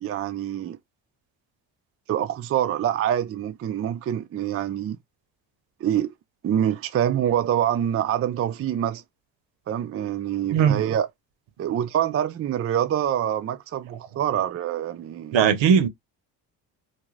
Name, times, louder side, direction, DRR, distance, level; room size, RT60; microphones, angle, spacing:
voice 1, 0.0-0.8 2.1-5.0 5.8-6.1 6.4-9.0 9.7-11.1 11.6-15.4, right 10 dB, 30° right, 0.4 m, -25 dB
voice 2, 15.3-15.9, right 7 dB, 70° right, 0.8 m, -18 dB
2.5 x 2.1 x 3.1 m
supercardioid pair, 70°, 47 cm